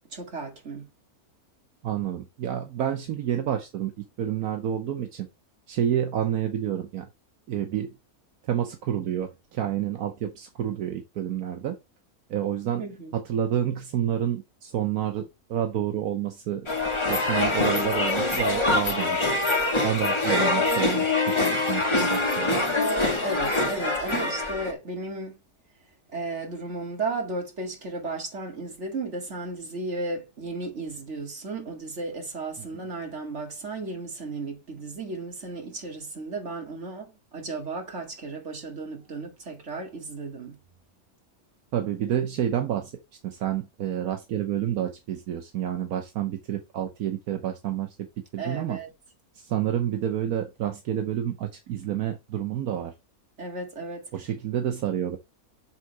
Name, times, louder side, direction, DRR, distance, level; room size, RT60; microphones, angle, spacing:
voice 1, 0.1-0.9 12.8-13.2 23.2-25.3 26.1-40.6 48.4-48.9 53.4-54.1, right 3 dB, 50° right, 2.3 m, -34 dB
voice 2, 1.8-3.9 4.2-5.3 5.7-7.1 7.5-7.9 8.4-11.8 12.3-12.8 13.1-16.7 17.1-19.2 19.8-22.6 32.6-32.7 41.7-42.9 43.2-47.9 48.3-48.8 49.3-52.9 54.1-55.2, right 10 dB, 80° right, 1.3 m, -29 dB
sound 1, 16.7-24.7, left 2 dB, 20° left, 1.7 m, -24 dB
7.5 x 3.8 x 4.6 m
omnidirectional pair, 1.6 m